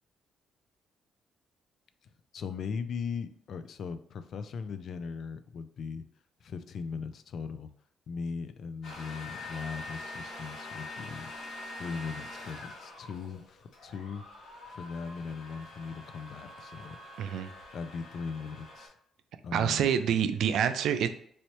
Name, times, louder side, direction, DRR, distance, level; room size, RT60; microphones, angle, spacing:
voice 1, 2.3-6.0 6.4-7.7 8.1-11.3 11.8-14.2 14.7-17.0 17.7-18.9 19.4-20.1, left 5 dB, 60° left, 11 dB, 0.3 m, -39 dB
sound 1, 8.8-18.9, left 2 dB, 85° left, 1.4 m, -45 dB
voice 2, 17.2-17.5 19.5-21.1, right 8 dB, 80° right, 10 dB, 0.3 m, -27 dB
3.2 x 2.7 x 2.9 m, 0.65 s
cardioid pair, 90°, 0 cm